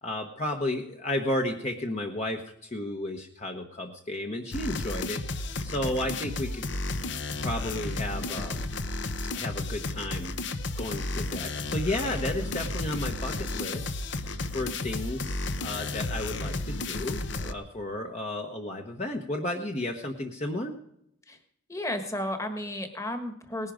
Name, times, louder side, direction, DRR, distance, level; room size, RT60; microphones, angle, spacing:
voice 1, 0.0-6.7 7.4-8.7 9.3-10.3 10.8-13.9 14.5-20.8, left 1 dB, 35° left, 3 dB, 1.1 m, -33 dB
sound 1, 4.5-17.5, left 2 dB, 60° left, 0.9 m, -33 dB
voice 2, 21.7-23.7, left 1 dB, 15° left, 7 dB, 1.5 m, -33 dB
19.0 x 11.0 x 5.1 m, 0.77 s
head